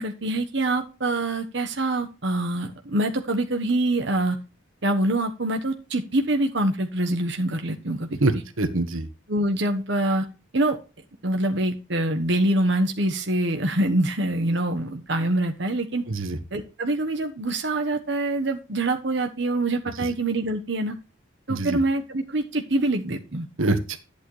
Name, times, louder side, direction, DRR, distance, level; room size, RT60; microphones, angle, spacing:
voice 1, 0.0-4.4 4.8-8.1 9.3-10.3 10.5-10.8 11.2-16.0 16.5-21.0 21.5-23.5, right 1 dB, 60° right, 4 dB, 1.2 m, -25 dB
voice 2, 8.2-9.1 16.1-16.4 21.5-21.8 23.6-24.0, right 2 dB, 80° right, 10 dB, 1.4 m, -24 dB
11.0 x 8.5 x 3.2 m, 0.31 s
head